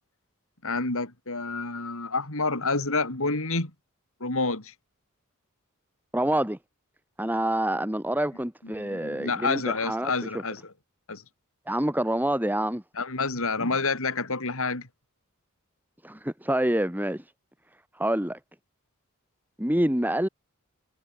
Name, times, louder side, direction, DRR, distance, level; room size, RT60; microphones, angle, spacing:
voice 1, 0.6-3.7 4.2-4.7 8.8-10.7 11.1-11.2 13.0-14.9, left 3 dB, 65° left, 4.4 m, -28 dB
voice 2, 6.1-6.6 7.2-10.4 11.7-12.8 16.0-17.3 18.0-18.4 19.6-20.3, right 1 dB, 10° right, 4.1 m, -27 dB
head